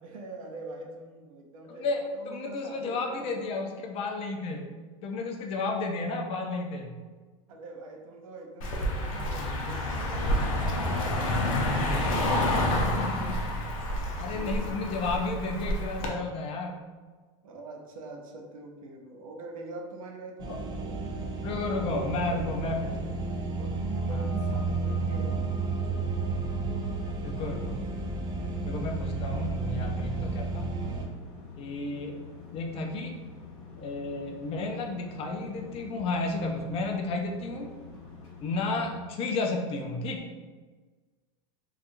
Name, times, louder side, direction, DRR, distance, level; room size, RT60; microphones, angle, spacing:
voice 1, 0.0-3.4 7.5-11.6 14.3-14.8 17.4-21.0 21.4-22.7 23.6-26.2, right 3 dB, 85° right, 1 dB, 0.6 m, -44 dB
voice 2, 1.7-4.7 5.0-6.9 13.0-13.4 14.2-16.8 20.5-20.6 21.4-22.9 24.1-24.2 27.2-27.8 28.6-30.7 31.6-32.2 32.5-33.1 33.8-37.7 38.4-40.2, left 3 dB, 35° left, 2 dB, 0.4 m, -32 dB
Car passing by, 8.6-16.1, left 1 dB, 80° left, 0.6 m, -28 dB
sound 1, 20.4-31.1, right 3 dB, 25° right, 0.4 m, -32 dB
sound 2, 30.8-38.9, left 5 dB, 55° left, 1.1 m, -47 dB
2.8 x 2.4 x 2.5 m, 1.4 s
supercardioid pair, 130°, 17 cm